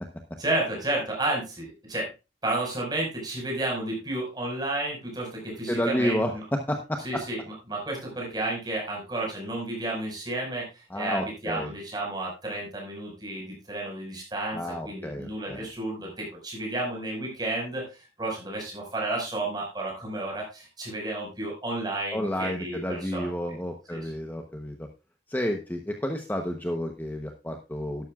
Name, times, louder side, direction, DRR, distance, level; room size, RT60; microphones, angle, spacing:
voice 1, 0.4-2.1 2.4-6.4 7.0-7.4 7.7-23.3 23.9-24.1, right 2 dB, 25° right, -1 dB, 5.4 m, -32 dB
voice 2, 5.7-6.3 6.7-7.0 10.9-11.7 14.5-15.7 22.1-24.9 25.3-28.1, equal, 10° left, 4 dB, 0.9 m, -30 dB
12.5 x 11.5 x 2.4 m, 0.27 s
head